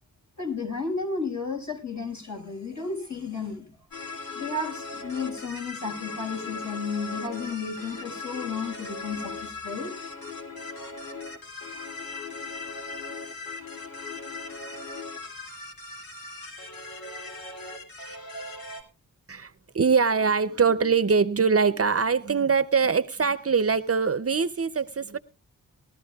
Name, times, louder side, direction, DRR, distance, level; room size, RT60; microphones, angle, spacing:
voice 1, 0.4-3.7 4.3-9.9, left 4 dB, 55° left, 1 dB, 5.4 m, -33 dB
sound 1, 3.9-18.8, left 3 dB, 90° left, 2.6 m, -38 dB
voice 2, 19.3-25.2, right 5 dB, 45° right, 12 dB, 0.7 m, -23 dB
20.5 x 13.5 x 2.3 m, 0.31 s
wide cardioid pair, 70°, 34 cm